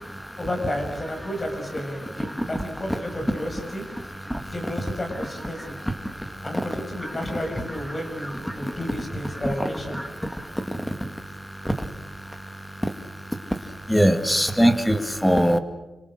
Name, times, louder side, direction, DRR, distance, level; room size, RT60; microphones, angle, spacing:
voice 1, 0.4-3.8 4.5-5.8 6.4-10.1, left 1 dB, 25° left, 4 dB, 6.5 m, -31 dB
voice 2, 10.4-11.1 11.6-11.7 12.8-12.9 13.9-15.6, equal, 5° left, 8 dB, 2.1 m, -22 dB
29.0 x 26.0 x 6.5 m, 1.0 s
wide cardioid pair, 135°, 0 cm